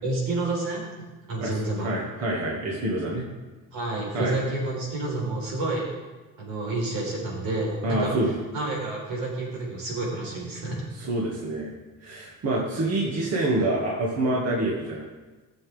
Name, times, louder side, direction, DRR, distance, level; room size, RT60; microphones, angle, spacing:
voice 1, 0.0-1.9 3.7-5.9 6.4-10.8, right 2 dB, 85° right, -2 dB, 4.4 m, -29 dB
voice 2, 1.8-3.3 4.1-4.3 7.8-8.3 11.0-11.7 12.0-15.0, right 2 dB, 50° right, -3 dB, 2.2 m, -26 dB
18.5 x 7.3 x 3.6 m, 1.2 s
cardioid pair, 115°, 33 cm